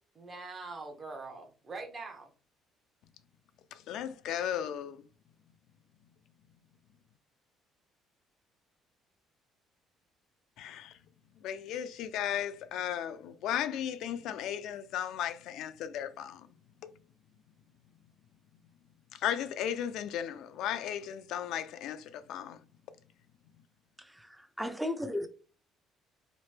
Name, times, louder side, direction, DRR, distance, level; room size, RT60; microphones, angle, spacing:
voice 1, 0.1-2.3, right 3 dB, 30° right, 0.8 m, -43 dB
voice 2, 3.9-5.0 10.6-10.9 11.4-16.4 19.2-22.6, left 10 dB, 75° left, 0.3 m, -35 dB
voice 3, 24.0-25.3, left 1 dB, 5° right, 0.4 m, -35 dB
3.0 x 2.1 x 3.2 m
cardioid pair, 115°, 0 cm